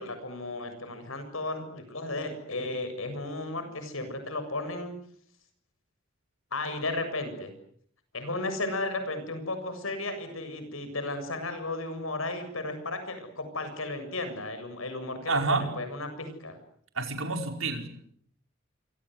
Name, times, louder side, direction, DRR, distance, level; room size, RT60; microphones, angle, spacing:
voice 1, 0.0-4.9 6.5-7.5 8.1-16.6, left 2 dB, 85° left, 9 dB, 7.4 m, -34 dB
voice 2, 15.3-15.6 16.9-17.9, right 3 dB, 75° right, 5 dB, 5.1 m, -28 dB
27.5 x 25.0 x 8.0 m, 0.65 s
head